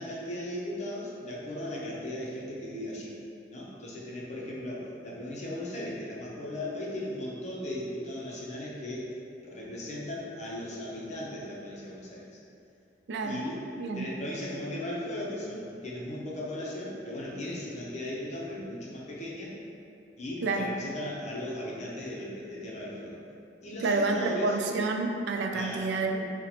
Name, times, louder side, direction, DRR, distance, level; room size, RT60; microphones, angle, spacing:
voice 1, 0.0-3.1 3.5-9.0 9.4-12.3 13.2-13.6 13.9-19.5 20.2-23.2 23.6-24.6 25.5-25.9, left 1 dB, 40° left, -5 dB, 0.6 m, -37 dB
voice 2, 13.1-13.4 13.8-14.1 20.4-20.7 23.8-26.3, right 3 dB, 75° right, 3 dB, 0.3 m, -29 dB
2.8 x 2.1 x 3.9 m, 2.6 s
head